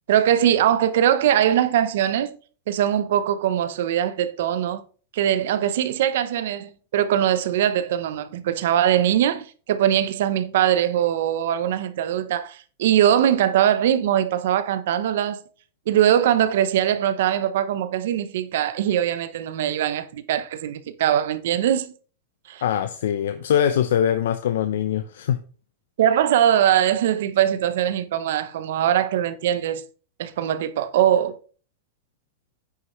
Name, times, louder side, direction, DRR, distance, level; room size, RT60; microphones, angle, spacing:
voice 1, 0.1-2.4 2.7-4.8 5.1-15.4 15.9-21.9 22.5-22.6 26.0-29.8 30.2-31.4, right 10 dB, 70° right, 0.8 m, -21 dB
voice 2, 22.6-25.4, left 9 dB, 80° left, 0.6 m, -22 dB
9.4 x 6.5 x 3.1 m
supercardioid pair, 145°, 0 cm